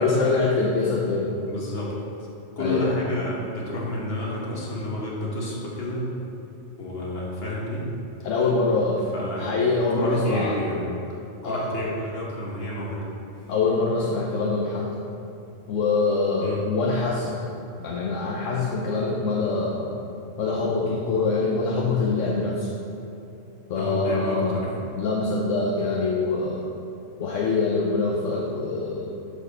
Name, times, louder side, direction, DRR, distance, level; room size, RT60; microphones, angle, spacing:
voice 1, 0.0-1.3 2.6-3.0 8.2-9.1 9.4-10.6 11.4-11.7 13.5-14.9 15.7-17.4 17.8-19.9 20.4-22.7 23.7-24.7 24.9-26.7 27.2-29.1, left 3 dB, 70° left, -2 dB, 1.1 m, -24 dB
voice 2, 1.5-1.9 2.6-6.1 6.8-7.9 9.1-9.5 9.9-10.8 11.4-13.0 16.4-16.6 23.7-24.8, left 1 dB, 50° left, -4 dB, 1.8 m, -30 dB
8.4 x 4.5 x 6.6 m, 2.8 s
omnidirectional pair, 1.4 m